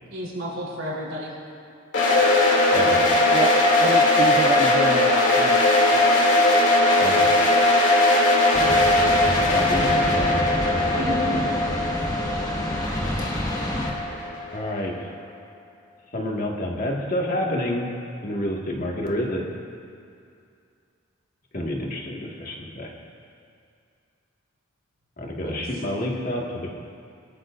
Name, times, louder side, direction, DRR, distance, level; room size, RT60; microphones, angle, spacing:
voice 1, 0.1-1.3 10.8-11.4 25.4-25.7, equal, 70° right, -4 dB, 3.8 m, -31 dB
sound 1, 1.9-14.8, left 1 dB, 60° left, 2.8 m, -19 dB
voice 2, 3.3-6.2, right 3 dB, 30° right, 5 dB, 0.4 m, -29 dB
voice 3, 7.0-7.3 9.2-11.0 11.3-11.4 12.7-12.9 14.5-15.1 16.1-17.9 18.2-19.4 21.5-22.9 25.2-26.7, left 1 dB, 45° left, -2 dB, 1.9 m, -29 dB
sound 2, 8.5-13.9, left 1 dB, 20° left, 1.7 m, -28 dB
23.0 x 13.5 x 2.6 m, 2.4 s
head